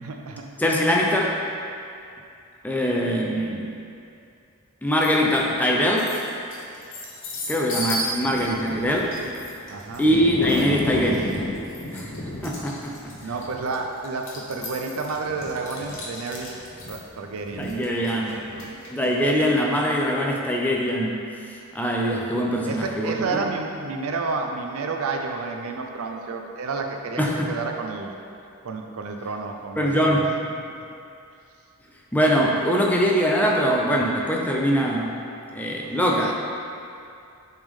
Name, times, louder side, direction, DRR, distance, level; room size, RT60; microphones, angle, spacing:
voice 1, 0.0-0.5 9.7-10.1 13.2-16.6 16.9-18.8 19.5-19.6 22.6-27.2 27.5-28.1 28.6-30.2 35.8-36.3, right 4 dB, 75° right, 3 dB, 0.5 m, -31 dB
voice 2, 0.6-1.4 2.6-3.7 4.8-6.1 7.5-9.2 10.0-11.3 11.9-12.1 12.4-13.1 17.6-18.4 18.9-23.5 27.2-27.5 29.8-30.3 32.1-35.1 35.5-36.3, equal, 5° left, -2 dB, 0.4 m, -22 dB
sound 1, 5.0-5.4 5.8-19.1, left 1 dB, 60° left, 1.0 m, -32 dB
8.0 x 3.5 x 3.6 m, 2.5 s
head